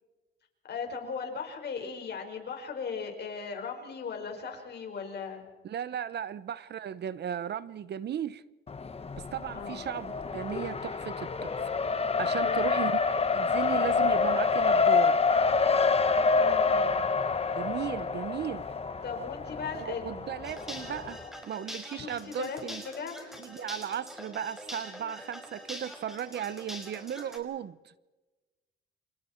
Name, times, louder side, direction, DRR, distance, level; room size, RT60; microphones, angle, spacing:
voice 1, 0.6-5.4 9.5-9.9 12.4-12.7 16.3-16.9 19.0-20.1 21.9-23.4, left 5 dB, 55° left, 5.2 m, -38 dB
voice 2, 5.6-8.4 9.2-11.7 12.2-13.0 13.3-15.2 17.6-18.7 19.7-22.8 23.4-27.8, right 9 dB, 55° right, 0.9 m, -36 dB
Race car auto racing, 8.7-21.3, left 4 dB, 30° left, 1.4 m, -27 dB
sound 1, 20.4-27.4, equal, ahead, 5.7 m, -44 dB
29.0 x 26.5 x 4.5 m
cardioid pair, 90°, 20 cm